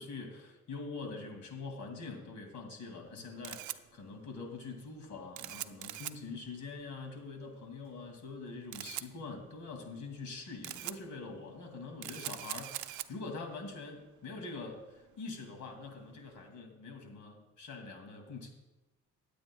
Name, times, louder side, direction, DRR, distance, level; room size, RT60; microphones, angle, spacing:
voice 1, 0.0-18.5, left 3 dB, 75° left, 3 dB, 2.4 m, -44 dB
Camera, 3.1-16.4, right 14 dB, 75° right, 0.5 m, -46 dB
22.0 x 8.4 x 2.3 m, 1.0 s
cardioid pair, 90°, 30 cm